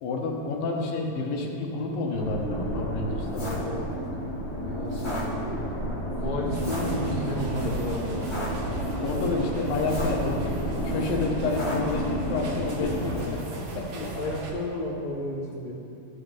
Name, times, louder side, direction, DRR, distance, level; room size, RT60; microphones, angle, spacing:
voice 1, 0.0-3.4 9.0-10.6 10.8-13.4, left 3 dB, 80° left, 1 dB, 2.6 m, -29 dB
sound 1, 2.1-13.2, equal, 30° left, 2.4 m, -31 dB
voice 2, 3.3-4.3 4.6-5.6 6.1-8.6 12.8-15.7, left 1 dB, 60° left, -5 dB, 0.9 m, -33 dB
sound 2, 6.5-14.5, right 2 dB, 70° right, 1.6 m, -37 dB
14.0 x 5.5 x 3.7 m, 2.7 s
omnidirectional pair, 4.1 m